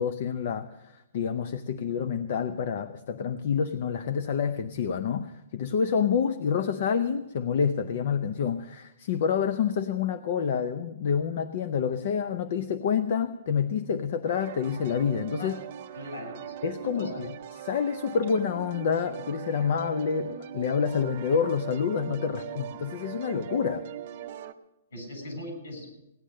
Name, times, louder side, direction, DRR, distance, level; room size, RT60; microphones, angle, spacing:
voice 1, 0.0-15.5 16.6-17.3 17.6-23.8, left 7 dB, 45° left, 10 dB, 0.6 m, -28 dB
sound 1, 14.3-24.5, right 10 dB, 35° right, 0.7 m, -40 dB
voice 2, 15.9-17.3 22.5-22.6 24.9-25.9, left 1 dB, 65° left, 3 dB, 7.2 m, -40 dB
17.0 x 10.0 x 6.4 m, 0.88 s
hypercardioid pair, 170°, 0 cm